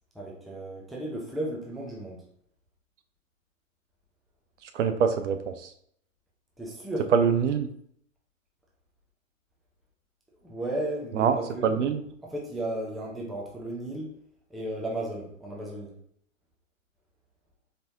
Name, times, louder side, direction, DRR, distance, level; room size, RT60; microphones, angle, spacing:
voice 1, 0.1-2.2 6.6-7.1 10.4-11.8 12.2-14.1 14.5-15.9, right 1 dB, ahead, -3 dB, 0.5 m, -34 dB
voice 2, 4.7-5.7 7.1-7.7 11.2-11.4 11.6-12.0, right 7 dB, 60° right, 8 dB, 0.6 m, -24 dB
4.1 x 3.3 x 2.7 m, 0.67 s
figure-of-eight pair, 105°, 40 cm